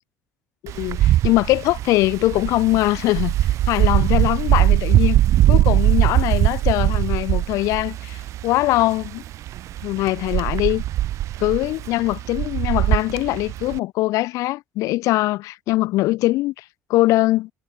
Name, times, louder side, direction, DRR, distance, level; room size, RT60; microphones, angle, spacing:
voice 1, 0.6-3.3 3.7-5.2 5.5-9.2 9.8-10.8 11.4-16.6 16.9-17.5, left 18 dB, 75° left, 5.0 m, -21 dB
Wind, 0.7-13.8, right 13 dB, 60° right, 6.1 m, -21 dB
cardioid pair, 105°, 6 cm